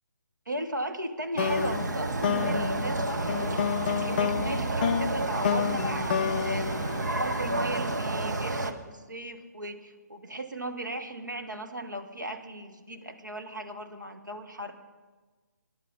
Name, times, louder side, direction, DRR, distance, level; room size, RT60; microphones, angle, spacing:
voice 1, 0.5-6.7 7.2-14.7, right 1 dB, 90° right, 4 dB, 1.7 m, -36 dB
sound 1, 1.4-7.8, left 8 dB, 30° left, 0.4 m, -30 dB
sound 2, 1.4-8.7, right 2 dB, 70° right, 1.3 m, -30 dB
20.5 x 10.5 x 5.3 m, 1.3 s
figure-of-eight pair, 145°, 10 cm